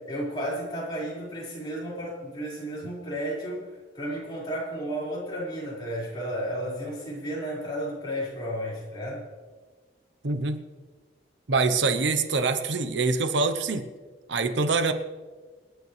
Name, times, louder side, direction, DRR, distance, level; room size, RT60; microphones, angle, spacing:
voice 1, 0.1-9.2, equal, 25° left, -7 dB, 5.2 m, -33 dB
voice 2, 10.2-10.6 11.5-13.9 14.3-14.9, right 4 dB, 85° right, 8 dB, 1.0 m, -25 dB
27.5 x 9.5 x 3.4 m, 1.4 s
head